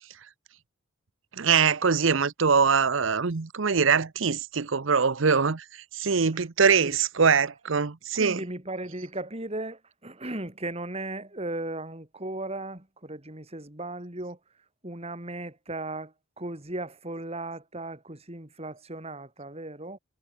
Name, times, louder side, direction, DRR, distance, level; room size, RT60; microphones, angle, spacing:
voice 1, 1.4-5.6 5.9-8.4, right 5 dB, 65° right, 0.8 m, -23 dB
voice 2, 8.1-14.4 14.8-20.0, right 2 dB, 30° right, 3.0 m, -36 dB
head